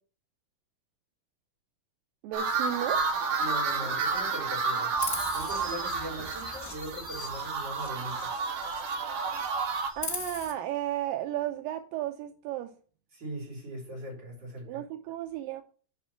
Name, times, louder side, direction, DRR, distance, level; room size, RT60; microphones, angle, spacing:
voice 1, 2.2-3.1 10.0-12.7 14.7-15.6, right 12 dB, 85° right, 2.5 m, -34 dB
sound 1, 2.3-9.9, right 4 dB, 70° right, 3.2 m, -31 dB
voice 2, 3.4-4.9 5.3-8.3 13.1-14.8, right 1 dB, 30° right, 5.1 m, -40 dB
Chirp tweet, 5.0-9.0 9.3-10.5, left 3 dB, 20° left, 2.1 m, -40 dB
9.6 x 5.5 x 5.7 m
omnidirectional pair, 3.9 m